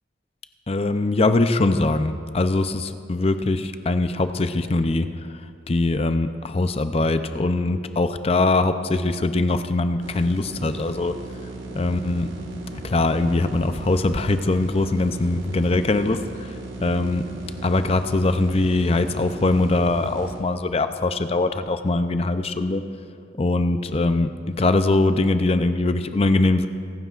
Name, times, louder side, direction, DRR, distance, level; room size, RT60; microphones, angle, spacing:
voice 1, 0.7-5.1 5.7-11.1 11.7-12.3 12.7-16.5 16.8-17.2 17.6-22.8 23.4-26.7, left 2 dB, 30° left, 10 dB, 0.5 m, -22 dB
sound 1, 10.0-20.4, right 3 dB, 85° right, 1.5 m, -37 dB
26.0 x 9.4 x 2.4 m, 2.4 s
head